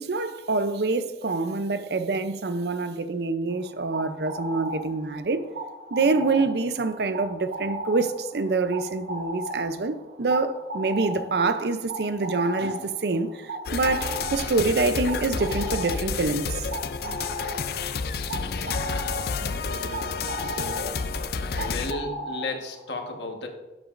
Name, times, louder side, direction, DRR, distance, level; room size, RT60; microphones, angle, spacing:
voice 1, 0.0-5.4 5.9-16.7, right 3 dB, 70° right, 0.6 m, -26 dB
sound 1, 3.5-22.9, right 1 dB, 90° right, 1.2 m, -37 dB
sound 2, 13.7-21.9, left 5 dB, 60° left, 0.4 m, -30 dB
voice 2, 21.6-23.5, left 2 dB, 80° left, 1.3 m, -33 dB
12.5 x 8.2 x 2.5 m
head